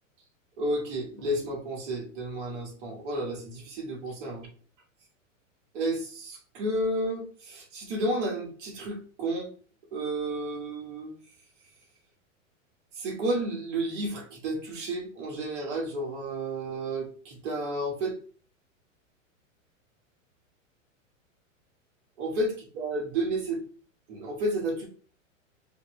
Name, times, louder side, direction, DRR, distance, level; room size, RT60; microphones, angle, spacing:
voice 1, 0.6-4.5 5.7-9.5 9.9-11.1 13.0-18.2 22.2-23.6 24.1-24.9, right 1 dB, 55° right, 0 dB, 2.1 m, -31 dB
4.2 x 2.9 x 3.3 m, 0.41 s
hypercardioid pair, 115°, 39 cm